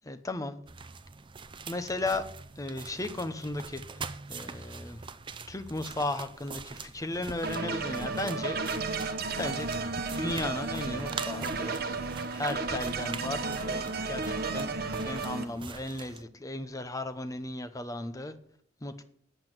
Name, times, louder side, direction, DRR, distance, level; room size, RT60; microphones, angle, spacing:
voice 1, 0.0-0.6 1.7-2.3 2.6-5.0 5.5-8.6 9.4-9.7 10.1-11.8 12.3-14.7 15.0-18.3 18.8-19.0, left 2 dB, 15° left, 9 dB, 0.8 m, -35 dB
sound 1, 0.7-16.2, right 5 dB, 25° right, 0.5 m, -44 dB
sound 2, 7.4-15.4, right 3 dB, 50° right, 1.0 m, -33 dB
9.0 x 8.1 x 7.8 m, 0.65 s
head